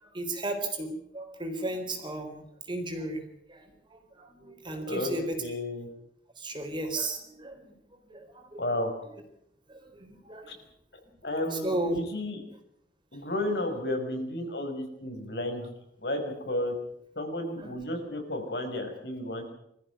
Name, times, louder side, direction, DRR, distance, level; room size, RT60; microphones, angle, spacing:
voice 1, 0.0-3.2 3.5-3.6 3.9-5.4 6.4-7.6 8.1-8.6 9.7-10.6 11.5-12.0 13.2-13.3 17.6-17.7, right 2 dB, 25° right, 4 dB, 4.1 m, -34 dB
voice 2, 5.4-5.9 8.6-8.9 10.5-10.6 11.2-12.4 13.1-15.6 16.0-16.7 17.2-19.5, left 1 dB, 70° left, 4 dB, 5.4 m, -32 dB
23.5 x 14.5 x 9.3 m, 0.75 s
head